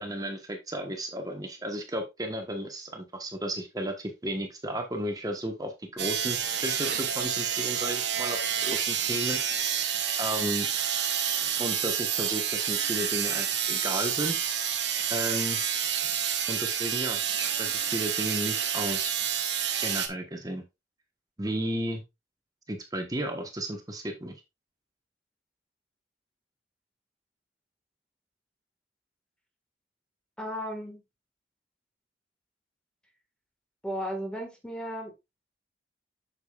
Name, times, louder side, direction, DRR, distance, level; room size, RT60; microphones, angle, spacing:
voice 1, 0.0-9.7 10.2-10.7 11.6-14.7 15.1-15.6 16.5-19.2 19.8-20.6 21.4-22.0 22.7-24.3, right 1 dB, 20° right, 1.2 m, -34 dB
sound 1, 6.0-20.1, right 8 dB, 75° right, 1.3 m, -29 dB
voice 2, 30.4-31.0 33.8-35.1, equal, 5° left, 1.8 m, -34 dB
7.9 x 6.9 x 2.4 m
head